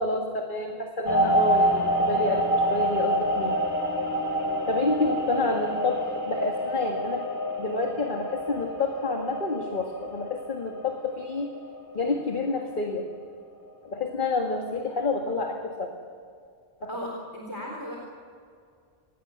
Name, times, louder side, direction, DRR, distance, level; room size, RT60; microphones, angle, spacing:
voice 1, 0.0-3.6 4.7-7.2 7.6-11.5 11.9-13.1 13.9-15.9 16.8-16.9, left 3 dB, 50° left, 2 dB, 2.0 m, -28 dB
sound 1, 1.1-12.4 12.7-13.1, right 1 dB, 20° left, 3.0 m, -27 dB
voice 2, 16.9-18.0, equal, 20° right, -2 dB, 3.8 m, -36 dB
27.0 x 20.5 x 7.2 m, 2.3 s
omnidirectional pair, 1.1 m